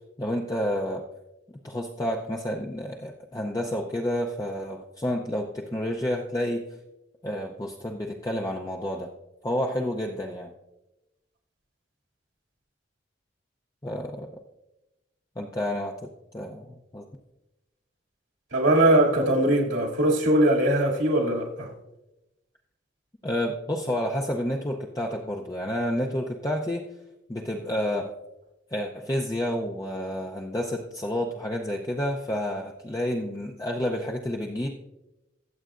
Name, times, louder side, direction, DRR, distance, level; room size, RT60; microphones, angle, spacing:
voice 1, 0.2-1.0 1.6-6.6 7.2-9.1 9.4-10.5 13.8-14.3 15.4-17.1 23.2-26.9 27.3-28.1 28.7-34.7, left 1 dB, 20° left, 0 dB, 0.6 m, -30 dB
voice 2, 18.5-21.7, right 1 dB, 85° right, -2 dB, 2.6 m, -21 dB
23.0 x 7.9 x 2.5 m, 0.97 s
head